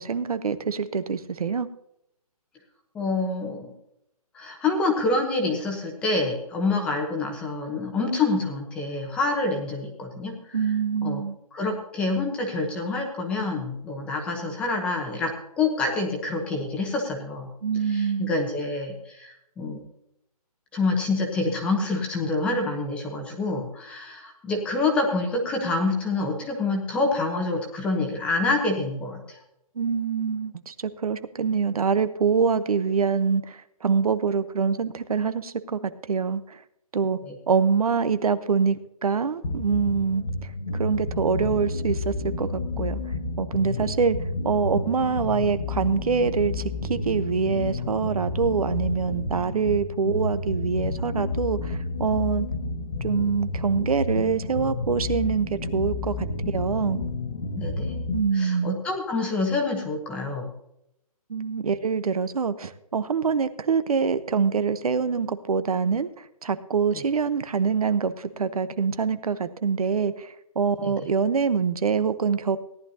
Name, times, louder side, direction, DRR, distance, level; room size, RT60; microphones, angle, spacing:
voice 1, 0.0-1.7 10.5-11.4 17.6-18.4 29.7-36.6 36.9-37.2 37.5-44.2 44.4-52.5 53.0-56.3 56.5-57.0 58.1-58.8 61.3-72.6, right 6 dB, 65° right, 13 dB, 1.0 m, -25 dB
voice 2, 2.9-3.7 4.3-10.6 11.0-11.2 11.5-17.5 17.9-19.8 20.7-29.4 37.2-37.3 57.5-57.9 58.3-60.5 70.8-70.9, left 3 dB, 5° left, 1 dB, 1.0 m, -27 dB
sound 1, 39.4-58.2, left 3 dB, 60° left, 1.5 m, -30 dB
17.5 x 11.5 x 2.8 m, 0.79 s
hypercardioid pair, 170°, 20 cm